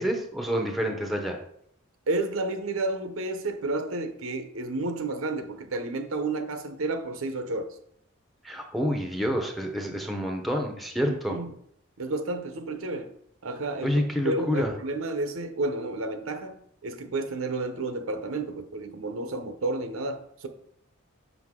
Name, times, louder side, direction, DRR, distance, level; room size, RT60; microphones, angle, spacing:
voice 1, 0.0-1.4 8.4-11.4 13.8-14.7, equal, ahead, 0.6 m, -28 dB
voice 2, 2.1-7.8 11.0-11.5 12.0-13.1 13.4-16.6 16.8-20.5, right 2 dB, 75° right, 0.7 m, -31 dB
6.1 x 5.5 x 3.6 m
head